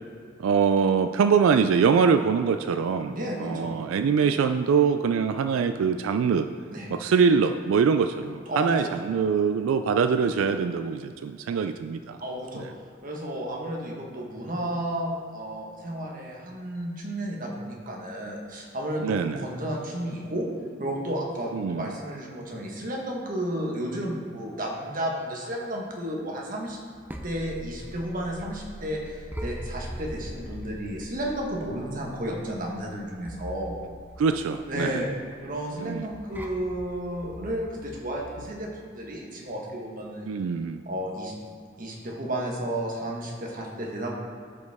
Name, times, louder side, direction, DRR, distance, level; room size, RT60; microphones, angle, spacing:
voice 1, 0.4-6.5 6.9-12.2 12.5-12.6 19.0-19.5 21.5-21.9 34.2-35.0 35.8-36.1 40.3-40.8, right 6 dB, 90° right, 9 dB, 0.3 m, -23 dB
voice 2, 3.1-3.7 6.7-6.9 8.5-8.9 12.2-12.7 13.0-20.5 20.8-26.8 27.2-33.8 34.7-35.1 35.4-40.3 40.8-41.3 41.8-44.2, right 1 dB, 40° right, -1 dB, 1.3 m, -32 dB
sound 1, 26.7-38.6, equal, 10° right, 0.5 m, -42 dB
13.5 x 5.1 x 3.5 m, 2.3 s
head